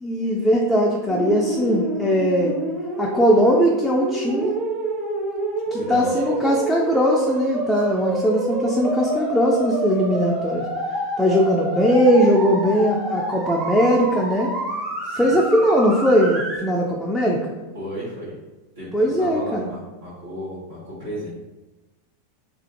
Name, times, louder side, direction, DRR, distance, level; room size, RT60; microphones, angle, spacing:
voice 1, 0.0-2.5 3.0-4.6 5.7-10.7 11.2-14.5 15.2-17.5 18.9-19.7, equal, 5° left, -3 dB, 0.4 m, -19 dB
sound 1, 1.1-16.6, right 2 dB, 30° right, 0.8 m, -28 dB
voice 2, 5.6-6.4 15.0-15.4 17.7-18.4 18.7-21.3, equal, 90° right, -13 dB, 1.2 m, -34 dB
2.5 x 2.4 x 2.7 m, 1.1 s
hypercardioid pair, 95°, 0 cm